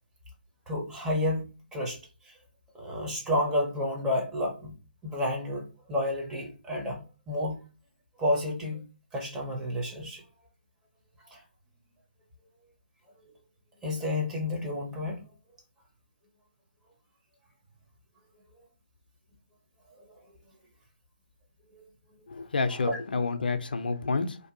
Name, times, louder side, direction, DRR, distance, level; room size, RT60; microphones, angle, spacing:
voice 1, 0.7-2.0 2.2-2.3 2.7-4.7 5.0-7.7 8.2-8.8 9.1-10.2 11.3-11.4 13.2-13.3 13.8-15.2 20.0-20.1 21.7-21.8 22.7-23.0, left 1 dB, 10° right, -1 dB, 0.6 m, -31 dB
voice 2, 22.3-24.4, left 4 dB, 65° left, 9 dB, 0.4 m, -29 dB
2.6 x 2.2 x 2.6 m, 0.33 s
figure-of-eight pair, 150°, 5 cm